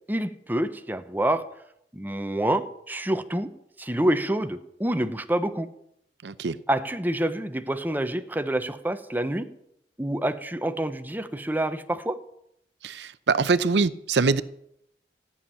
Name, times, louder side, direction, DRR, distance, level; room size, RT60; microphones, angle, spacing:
voice 1, 0.1-1.5 1.9-3.5 3.8-5.7 6.7-9.5 10.0-12.2, right 1 dB, 10° right, 9 dB, 0.8 m, -27 dB
voice 2, 6.2-6.6 12.8-14.4, right 4 dB, 80° right, 15 dB, 0.6 m, -23 dB
14.5 x 7.2 x 9.9 m, 0.76 s
head